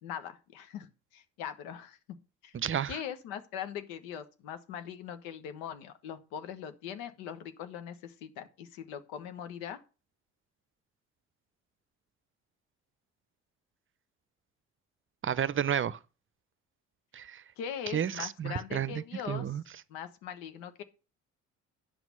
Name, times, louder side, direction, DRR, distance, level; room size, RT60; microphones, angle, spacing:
voice 1, 0.0-2.0 2.4-2.6 2.9-9.8 17.6-19.5 19.9-20.8, left 8 dB, 80° left, 1.3 m, -41 dB
voice 2, 2.5-3.0 15.2-16.0 17.1-17.4 17.9-19.6, right 9 dB, 35° right, 0.7 m, -31 dB
10.0 x 6.1 x 5.5 m
hypercardioid pair, 55°, 34 cm